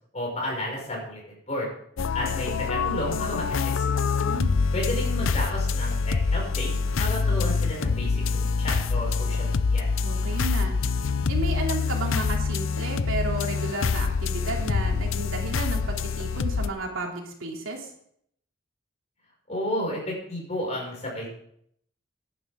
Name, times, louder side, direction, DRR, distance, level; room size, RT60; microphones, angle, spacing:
voice 1, 0.1-1.7 2.1-3.9 4.7-9.9 19.5-21.3, left 1 dB, 35° left, -2 dB, 5.8 m, -32 dB
sound 1, 2.0-16.7, left 4 dB, 80° left, 0.5 m, -25 dB
voice 2, 4.2-4.6 10.0-10.8 11.3-17.9, right 2 dB, 85° right, 0 dB, 2.9 m, -33 dB
16.5 x 11.0 x 3.7 m, 0.68 s
head